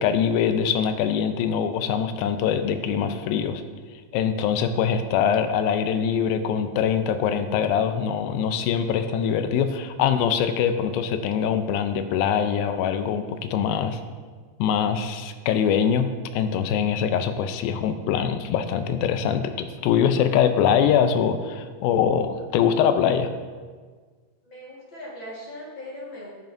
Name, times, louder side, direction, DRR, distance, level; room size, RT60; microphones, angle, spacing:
voice 1, 0.0-3.6 4.1-14.0 14.6-23.3, left 8 dB, 90° left, 9 dB, 2.4 m, -23 dB
voice 2, 24.4-26.3, left 1 dB, 45° left, -4 dB, 1.7 m, -39 dB
11.0 x 9.1 x 2.6 m, 1.5 s
omnidirectional pair, 4.1 m